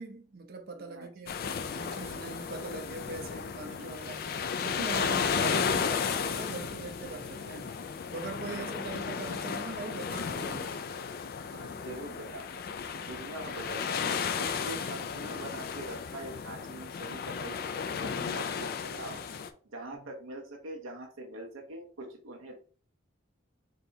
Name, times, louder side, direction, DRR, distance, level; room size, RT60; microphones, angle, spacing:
voice 1, 0.0-1.4 1.7-7.8 8.1-10.8 14.8-14.9 19.9-20.1, right 3 dB, 45° right, 0.6 m, -41 dB
voice 2, 0.8-1.1 8.5-8.7 11.5-12.5 12.9-19.2 19.7-22.6, right 1 dB, 80° right, 0.8 m, -43 dB
sound 1, 1.3-19.5, left 6 dB, 45° left, 0.3 m, -34 dB
4.2 x 3.3 x 2.7 m
head